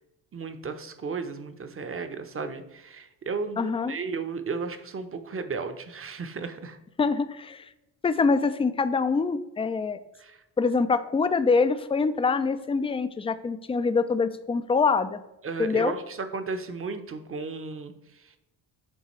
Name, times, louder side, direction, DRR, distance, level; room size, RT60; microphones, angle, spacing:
voice 1, 0.3-6.8 10.2-10.4 15.4-18.4, right 4 dB, 30° right, 9 dB, 0.8 m, -34 dB
voice 2, 3.6-3.9 7.0-7.7 8.0-10.0 10.6-15.2 15.6-15.9, left 4 dB, 15° left, 11 dB, 0.4 m, -25 dB
8.8 x 3.6 x 3.2 m, 0.93 s
hypercardioid pair, 60°, 47 cm